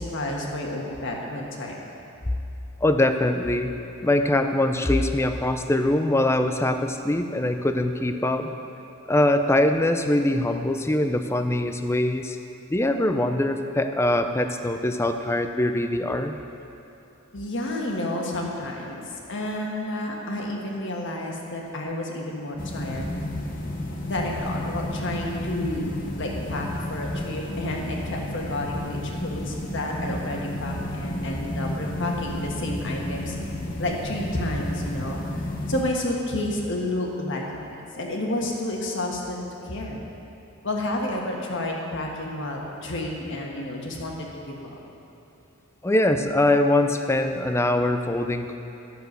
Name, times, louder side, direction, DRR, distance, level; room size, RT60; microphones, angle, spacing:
voice 1, 0.0-1.8 17.3-23.1 24.0-33.4 33.8-37.7 37.9-39.4 39.6-40.0 40.6-44.8, left 1 dB, 55° left, -1 dB, 1.5 m, -30 dB
voice 2, 2.8-3.7 4.0-8.5 9.1-12.4 12.7-16.4 45.8-48.6, left 1 dB, 10° left, 7 dB, 0.4 m, -23 dB
sound 1, 22.6-35.8, left 1 dB, 40° left, 0.9 m, -32 dB
12.5 x 6.9 x 6.6 m, 2.8 s
head